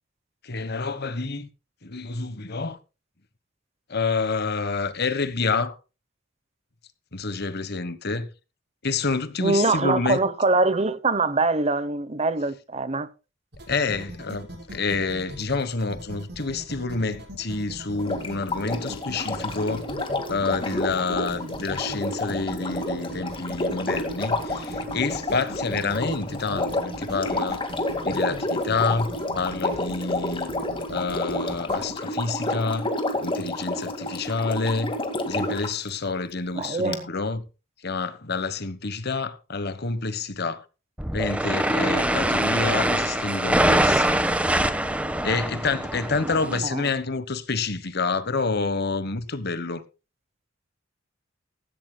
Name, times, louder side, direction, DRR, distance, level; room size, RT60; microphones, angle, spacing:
voice 1, 0.4-1.5 1.8-2.8 3.9-5.8 7.1-8.3 8.8-10.2 13.7-19.9 20.3-27.7 28.0-29.1 29.3-30.5 30.9-32.9 33.2-34.9 35.2-37.4 37.8-40.6 41.1-44.2 45.2-49.8, left 4 dB, 55° left, 1.3 m, -28 dB
voice 2, 9.4-13.1 36.5-37.0 46.5-46.8, right 3 dB, 30° right, 0.9 m, -23 dB
sound 1, 13.5-31.9, right 1 dB, 60° right, 6.4 m, -40 dB
Sink (filling or washing), 17.9-35.8 36.9-37.0, left 2 dB, 25° left, 2.1 m, -30 dB
sound 2, 41.0-46.6, right 1 dB, 5° right, 1.3 m, -23 dB
16.0 x 16.0 x 2.3 m
head